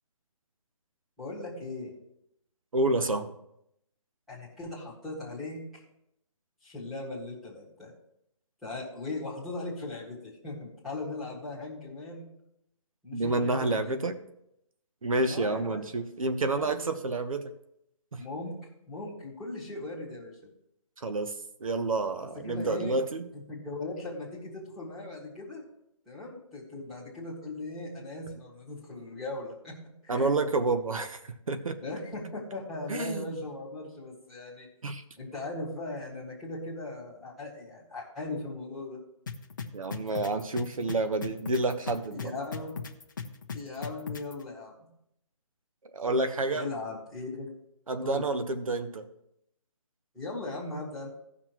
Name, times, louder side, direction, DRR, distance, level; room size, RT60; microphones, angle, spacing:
voice 1, 1.2-1.9 4.3-5.8 6.6-7.9 8.6-12.3 13.0-13.9 15.3-15.8 16.5-16.8 18.2-18.6 18.9-20.4 22.4-23.0 23.3-25.6 26.0-30.3 31.8-34.7 35.2-39.0 42.2-42.8 43.5-44.7 46.5-47.5 48.0-48.2 50.1-51.1, left 2 dB, ahead, -9 dB, 1.7 m, -38 dB
voice 2, 2.7-3.3 13.1-14.2 15.0-17.5 18.1-18.2 21.0-21.3 21.6-23.3 30.1-31.8 32.9-33.3 34.8-35.0 39.7-42.3 45.9-46.7 47.9-49.1, right 2 dB, 75° right, 9 dB, 1.0 m, -29 dB
sound 1, 39.3-44.3, left 5 dB, 35° left, 0.8 m, -37 dB
17.5 x 6.1 x 3.0 m, 0.79 s
hypercardioid pair, 175°, 18 cm